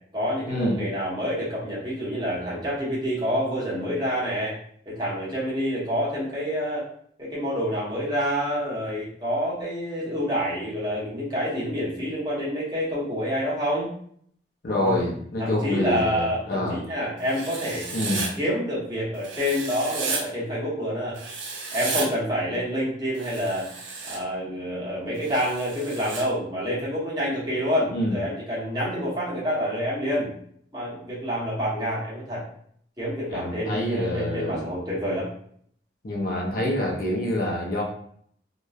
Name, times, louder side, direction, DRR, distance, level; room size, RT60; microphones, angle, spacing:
voice 1, 0.1-4.6 4.9-6.9 7.2-13.9 14.8-15.1 15.4-17.9 18.4-21.2 21.7-23.7 24.1-30.3 30.7-32.4 33.0-35.3, equal, 20° right, -7 dB, 1.0 m, -27 dB
voice 2, 14.6-16.8 17.9-18.3 27.9-28.2 33.3-34.7 36.0-37.8, left 1 dB, 55° left, -2 dB, 0.6 m, -26 dB
Writing, 17.3-18.3 19.2-20.2 21.2-22.1 23.1-24.2 25.2-26.2, right 4 dB, 90° right, 0.5 m, -33 dB
2.8 x 2.2 x 2.4 m, 0.63 s
head